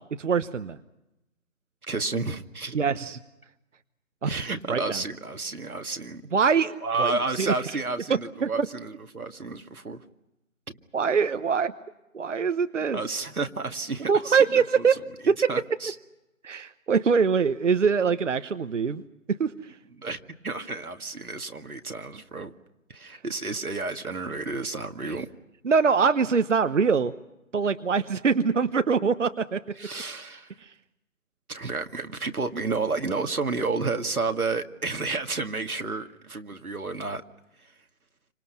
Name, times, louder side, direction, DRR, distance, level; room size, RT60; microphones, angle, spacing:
voice 1, 0.2-0.8 2.7-3.2 4.2-4.4 4.7-5.0 6.3-7.5 8.1-8.7 10.9-11.7 12.1-13.0 14.1-15.0 15.2-15.4 16.4-19.0 19.3-19.5 25.0-25.2 25.6-27.1 27.5-29.6 30.6-30.7, right 5 dB, 55° right, 11 dB, 1.1 m, -23 dB
voice 2, 1.8-2.8 4.2-6.2 6.8-10.0 12.9-14.9 15.5-15.9 20.0-22.5 22.9-25.3 29.8-30.5 31.5-37.2, right 3 dB, 90° right, 6 dB, 2.1 m, -31 dB
30.0 x 26.0 x 5.7 m, 0.94 s
figure-of-eight pair, 160°, 42 cm